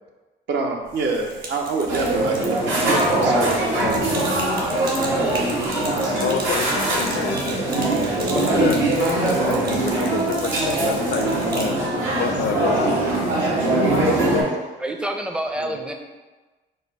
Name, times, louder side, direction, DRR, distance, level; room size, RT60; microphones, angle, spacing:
voice 1, 0.5-4.4 4.8-6.2 15.6-15.8, right 3 dB, 65° right, 0.7 m, -28 dB
Sink (filling or washing), 0.8-11.8, right 2 dB, 50° right, 1.1 m, -36 dB
sound 1, 1.9-14.4, right 2 dB, 85° right, 1.4 m, -22 dB
voice 2, 6.2-8.0 8.3-13.6 14.0-14.3, left 7 dB, 60° left, 0.5 m, -29 dB
voice 3, 14.8-15.9, right 1 dB, 5° right, 0.5 m, -27 dB
5.2 x 2.0 x 4.6 m
cardioid pair, 90°, 20 cm